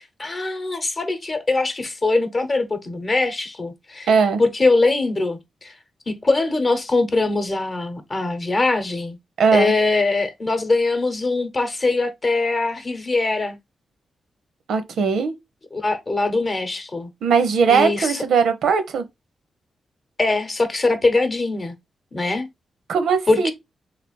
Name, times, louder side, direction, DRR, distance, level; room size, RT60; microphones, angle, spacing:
voice 1, 0.0-4.1 4.4-5.7 6.1-9.2 9.5-13.6 15.7-17.1 17.7-18.2 20.2-21.7 22.1-22.5 23.3-23.5, left 3 dB, 35° left, 0.8 m, -22 dB
voice 2, 4.1-4.4 9.4-9.7 14.7-15.3 17.2-19.0 22.9-23.5, right 5 dB, 85° right, 0.6 m, -19 dB
3.3 x 2.4 x 4.2 m
cardioid pair, 85°, 0 cm